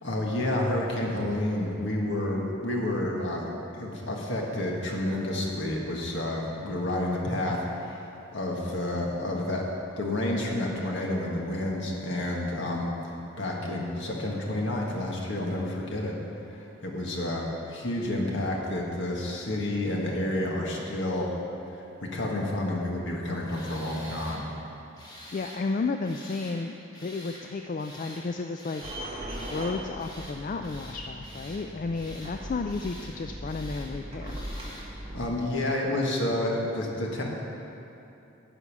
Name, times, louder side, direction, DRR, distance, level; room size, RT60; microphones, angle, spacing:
voice 1, 0.0-9.6 10.0-12.9 13.4-16.1 16.5-21.3 21.7-24.4 35.1-37.2, left 1 dB, 60° left, -2 dB, 1.7 m, -30 dB
Tools, 23.5-24.4 25.0-25.6 26.0-26.6 26.9-27.4 27.8-28.2 28.6-29.0 29.3-29.7 30.0-30.4 30.6-31.6 31.9-32.3 32.7-33.1 33.5-33.9 34.2-34.9, equal, 20° left, 1.7 m, -47 dB
voice 2, 25.3-28.8 29.5-34.4, left 3 dB, 40° left, 5 dB, 0.3 m, -32 dB
sound 1, 28.8-35.3, equal, 30° right, 1.4 m, -39 dB
11.0 x 5.5 x 8.5 m, 2.9 s
head